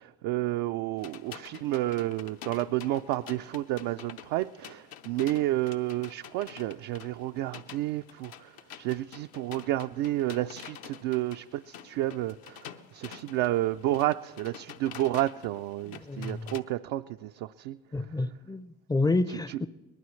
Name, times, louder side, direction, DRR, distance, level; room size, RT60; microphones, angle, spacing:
voice 1, 0.0-17.8 19.3-19.6, right 15 dB, 70° right, 0.5 m, -31 dB
sound 1, 1.0-16.6, left 9 dB, 75° left, 1.0 m, -48 dB
voice 2, 15.9-16.5 17.9-19.7, left 2 dB, 10° left, 0.5 m, -29 dB
22.5 x 19.5 x 3.2 m
supercardioid pair, 85°, 35 cm